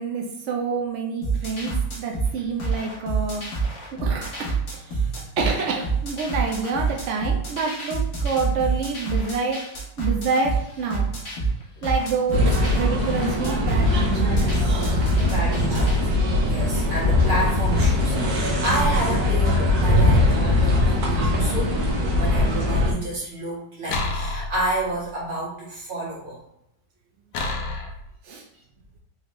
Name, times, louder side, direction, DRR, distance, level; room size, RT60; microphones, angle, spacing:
voice 1, 0.0-3.7 4.0-5.1 5.4-9.6 10.0-11.1 11.8-15.2 28.2-28.4, right 4 dB, 85° right, 1 dB, 0.6 m, -28 dB
sound 1, 1.2-16.0, right 4 dB, 50° left, 1.3 m, -27 dB
sound 2, 12.3-22.9, left 2 dB, 65° right, 1.2 m, -21 dB
voice 2, 15.2-26.4, right 1 dB, 35° right, -6 dB, 1.3 m, -30 dB
sound 3, 23.9-25.1 27.3-28.1, left 2 dB, 85° left, 1.3 m, -29 dB
4.3 x 2.5 x 3.0 m, 0.81 s
omnidirectional pair, 1.8 m